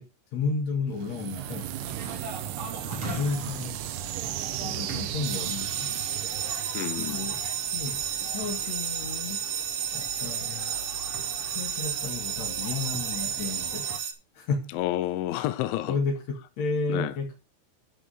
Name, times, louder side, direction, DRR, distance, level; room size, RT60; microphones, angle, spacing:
voice 1, 0.3-1.7 2.8-3.8 4.6-5.9 7.0-7.4 7.7-9.4 9.9-10.7 11.4-13.8 14.3-14.8 15.8-16.1 16.6-17.3, left 4 dB, 50° left, 2.4 m, -32 dB
sound 1, 0.9-7.8, right 13 dB, 80° right, 2.2 m, -36 dB
sound 2, 1.3-14.0, right 2 dB, 35° right, 2.7 m, -42 dB
sound 3, 5.2-14.1, right 9 dB, 65° right, 2.6 m, -32 dB
voice 2, 6.7-7.3 14.7-16.0 16.9-17.2, left 14 dB, 80° left, 3.0 m, -30 dB
12.0 x 5.0 x 6.5 m
omnidirectional pair, 5.5 m